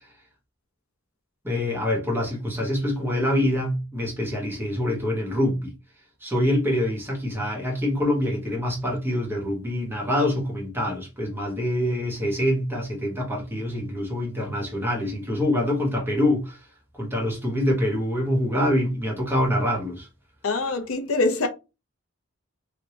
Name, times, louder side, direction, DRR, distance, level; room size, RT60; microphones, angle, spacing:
voice 1, 1.4-5.7 6.2-16.6 17.0-20.1, left 1 dB, 10° right, 1.1 m, -25 dB
voice 2, 20.4-21.5, left 3 dB, 75° left, 0.7 m, -24 dB
3.3 x 2.7 x 2.8 m
head